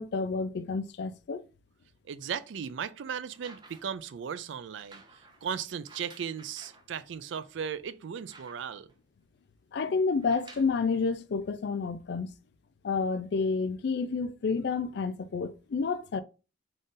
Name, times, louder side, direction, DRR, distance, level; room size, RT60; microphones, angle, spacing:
voice 1, 0.0-1.4 9.7-12.3 12.8-16.2, left 4 dB, 60° left, 0.4 m, -30 dB
voice 2, 2.1-5.0 5.4-8.9, right 7 dB, 70° right, 0.4 m, -36 dB
sound 1, 3.2-4.0 4.7-6.9 7.4-7.5 7.9-8.9 10.1-10.8 11.8-11.9, right 3 dB, 20° right, 0.7 m, -54 dB
4.0 x 2.5 x 3.7 m
head